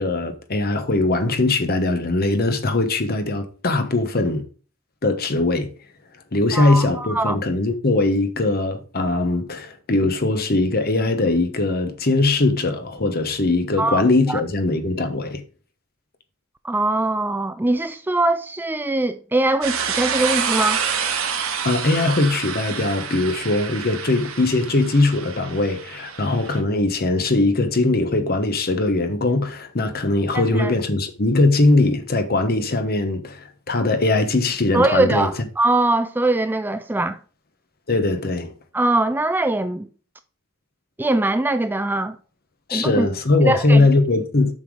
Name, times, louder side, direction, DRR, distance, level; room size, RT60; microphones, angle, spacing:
voice 1, 0.0-4.4 5.0-5.7 6.3-15.4 21.6-35.3 37.9-38.5 42.7-44.6, left 2 dB, 45° left, 1.1 m, -20 dB
voice 2, 6.5-7.4 13.8-14.0 14.3-14.4 16.6-20.8 30.3-30.7 34.7-37.2 38.7-39.9 41.0-42.2 42.7-43.1 43.4-43.9, right 2 dB, 10° right, 0.3 m, -22 dB
sound 1, 19.6-26.6, right 7 dB, 75° right, 1.7 m, -27 dB
7.5 x 5.8 x 4.8 m
head